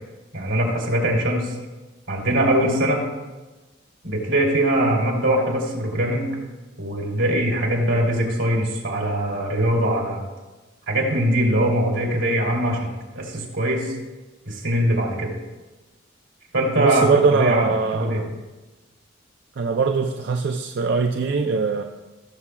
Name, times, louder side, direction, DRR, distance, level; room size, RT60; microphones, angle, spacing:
voice 1, 0.3-1.6 2.1-3.0 4.0-6.3 6.8-10.2 10.9-12.9 13.1-13.9 14.5-15.3 16.5-18.2, right 1 dB, 85° right, -2 dB, 2.6 m, -22 dB
voice 2, 16.8-18.3 19.6-21.8, right 4 dB, 60° right, 4 dB, 0.4 m, -21 dB
17.0 x 6.9 x 2.3 m, 1.2 s
head